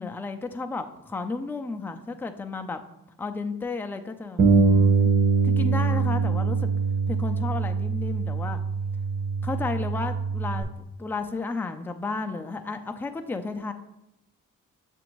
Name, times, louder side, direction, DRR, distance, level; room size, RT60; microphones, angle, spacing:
voice 1, 0.0-2.8 3.2-5.1 5.4-6.7 7.1-8.6 9.4-10.7 11.0-13.7, left 3 dB, 5° left, 6 dB, 0.4 m, -33 dB
Bass guitar, 4.4-10.6, right 4 dB, 30° right, 0.8 m, -23 dB
6.9 x 2.6 x 3.0 m, 0.91 s
supercardioid pair, 50°, 36 cm